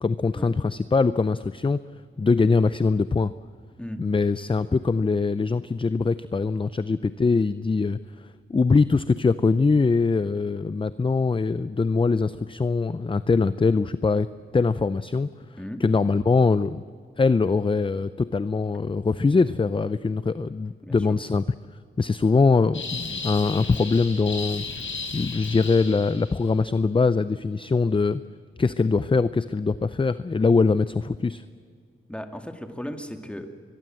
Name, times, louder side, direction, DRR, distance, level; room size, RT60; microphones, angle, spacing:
voice 1, 0.0-1.8 2.2-3.3 4.0-14.3 14.5-15.3 15.8-16.8 17.2-21.4 22.0-24.7 25.1-28.2 28.6-31.4, left 4 dB, 25° left, 15 dB, 0.5 m, -22 dB
sound 1, 22.7-26.4, left 4 dB, 65° left, 5.3 m, -34 dB
voice 2, 32.1-33.5, equal, 5° left, 6 dB, 2.2 m, -36 dB
23.0 x 22.0 x 7.7 m, 2.1 s
cardioid pair, 85°, 21 cm